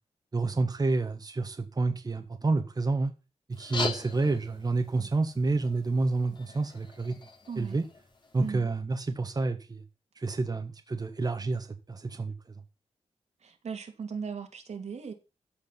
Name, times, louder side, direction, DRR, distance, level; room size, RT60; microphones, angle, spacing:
voice 1, 0.3-3.1 3.5-7.2 7.6-7.8 8.3-9.8 10.2-12.3, right 3 dB, 35° right, 1.5 m, -29 dB
sound 1, 3.5-8.5, left 3 dB, 45° left, 3.0 m, -40 dB
voice 2, 7.5-7.8 8.4-8.7 13.4-15.1, right 6 dB, 80° right, 2.5 m, -38 dB
13.5 x 5.1 x 7.4 m
wide cardioid pair, 95°, 11 cm